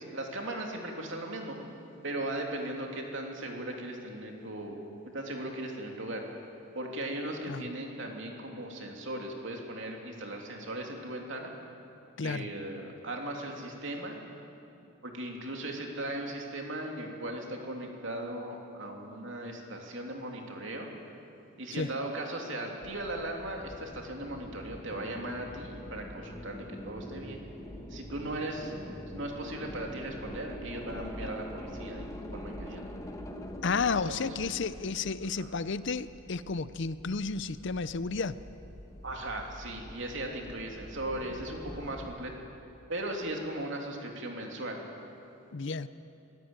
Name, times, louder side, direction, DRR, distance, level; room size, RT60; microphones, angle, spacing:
voice 1, 0.0-1.6 2.0-4.8 5.1-6.2 6.7-11.5 12.2-14.2 15.0-20.9 21.6-27.4 27.9-28.7 29.1-32.8 33.8-34.5 35.4-35.5 39.0-42.3 42.9-44.8, right 1 dB, 55° right, 1 dB, 3.1 m, -38 dB
voice 2, 12.2-12.5 21.7-21.9 33.6-38.4 45.5-45.9, left 4 dB, 55° left, 15 dB, 0.6 m, -32 dB
sound 1, 22.8-42.2, equal, 15° left, 1.3 m, -45 dB
23.5 x 16.5 x 9.0 m, 2.8 s
head